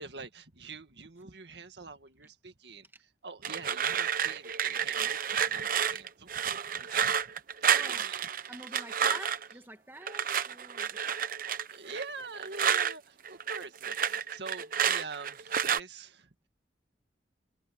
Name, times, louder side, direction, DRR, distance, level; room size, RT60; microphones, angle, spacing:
voice 1, 0.0-7.2 7.6-8.2 8.7-9.3 11.7-16.5, right 4 dB, 70° right, 2.0 m, -45 dB
sound 1, 3.4-9.5 10.1-12.9 13.3-15.8, right 8 dB, 55° right, 0.9 m, -30 dB
voice 2, 7.7-8.1 8.5-11.0, right 1 dB, 15° right, 2.0 m, -47 dB
head